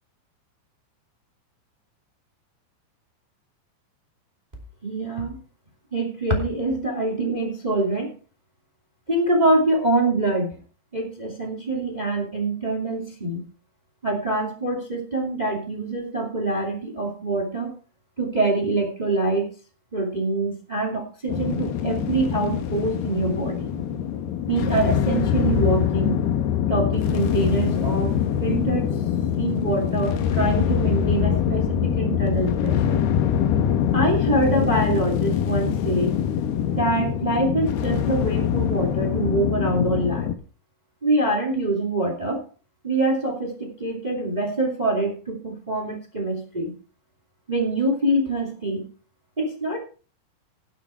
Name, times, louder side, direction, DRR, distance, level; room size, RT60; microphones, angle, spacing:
voice 1, 4.8-5.4 5.9-8.1 9.1-10.5 10.9-13.4 14.0-17.7 18.2-19.5 19.9-23.7 24.5-26.2 26.7-28.1 28.4-28.9 29.4-33.0 33.9-36.1 36.7-40.3 41.0-42.4 42.8-46.7 47.5-48.9 49.4-49.8, right 2 dB, 35° right, 2 dB, 0.6 m, -25 dB
sound 1, 21.3-40.3, left 9 dB, 80° left, 2.3 m, -24 dB
18.0 x 6.7 x 4.5 m, 0.37 s
omnidirectional pair, 6.0 m